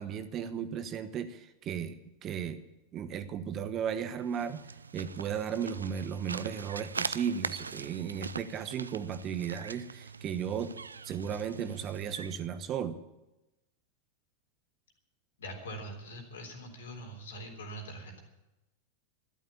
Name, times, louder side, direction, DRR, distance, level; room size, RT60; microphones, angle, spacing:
voice 1, 0.0-2.6 2.9-4.6 4.9-10.7 11.0-13.0, right 8 dB, 30° right, 11 dB, 1.0 m, -35 dB
sound 1, 4.2-12.4, right 5 dB, 75° right, 0.4 m, -42 dB
voice 2, 15.4-18.2, right 1 dB, 65° left, 3 dB, 3.5 m, -43 dB
12.5 x 12.0 x 8.7 m, 0.97 s
figure-of-eight pair, 90°, 0 cm